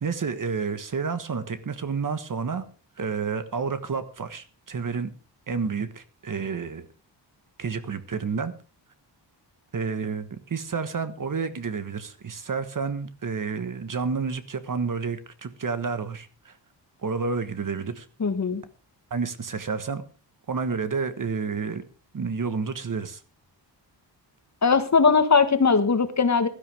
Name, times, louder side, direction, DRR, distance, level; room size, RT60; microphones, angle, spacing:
voice 1, 0.0-2.7 3.0-5.1 5.5-6.8 7.6-8.5 9.7-16.6 17.0-18.1 19.1-20.0 20.5-21.8 22.1-23.2, right 5 dB, 45° right, 11 dB, 1.4 m, -30 dB
voice 2, 18.2-18.6 24.6-26.5, left 5 dB, 40° left, 10 dB, 1.5 m, -20 dB
16.5 x 12.5 x 3.5 m, 0.33 s
wide cardioid pair, 120°, 44 cm